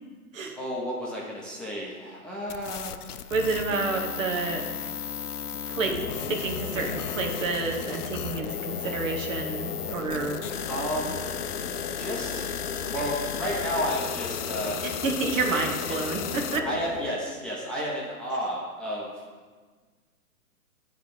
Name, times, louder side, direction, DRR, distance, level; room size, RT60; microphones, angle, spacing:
voice 1, 0.6-3.0 8.8-9.0 10.7-11.2 12.0-12.5 12.9-14.9 15.5-15.6 15.9-16.0 16.6-19.1, equal, ahead, -7 dB, 0.8 m, -32 dB
sound 1, 2.5-16.6, left 8 dB, 85° left, 0.6 m, -36 dB
voice 2, 3.3-4.7 5.7-6.0 6.3-10.4 14.8-16.7, right 4 dB, 60° right, 3 dB, 1.1 m, -29 dB
sound 2, 5.9-17.1, left 5 dB, 35° left, 0.5 m, -36 dB
10.0 x 3.5 x 5.1 m, 1.5 s
figure-of-eight pair, 120°, 45 cm